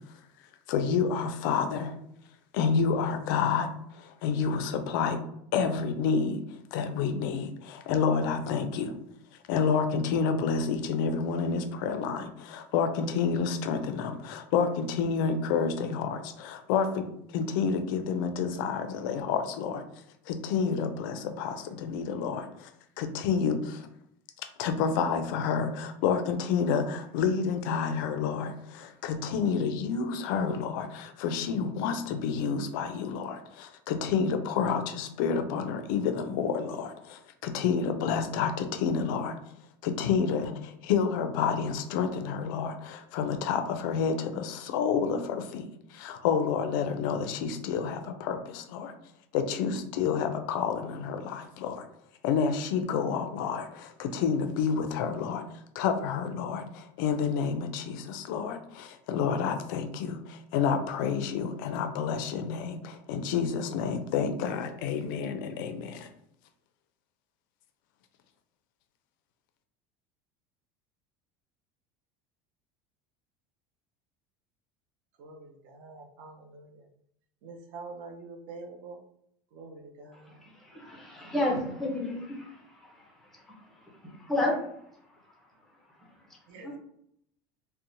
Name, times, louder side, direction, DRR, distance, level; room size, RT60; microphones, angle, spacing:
voice 1, 0.7-1.9 2.5-5.2 5.5-6.4 6.7-8.9 9.5-19.8 20.3-22.7 23.0-23.9 24.6-39.3 39.8-45.6 45.9-48.9 49.3-51.9 52.2-55.4 55.8-66.1, left 6 dB, 75° left, 7 dB, 0.4 m, -29 dB
voice 2, 75.2-76.8 77.4-79.0 79.5-80.3 86.5-86.8, right 3 dB, 55° right, 2 dB, 0.4 m, -45 dB
voice 3, 80.1-83.7 84.0-84.6 86.6-86.8, left 1 dB, ahead, -2 dB, 0.5 m, -32 dB
2.8 x 2.0 x 2.6 m, 0.72 s
cardioid pair, 165°, 11 cm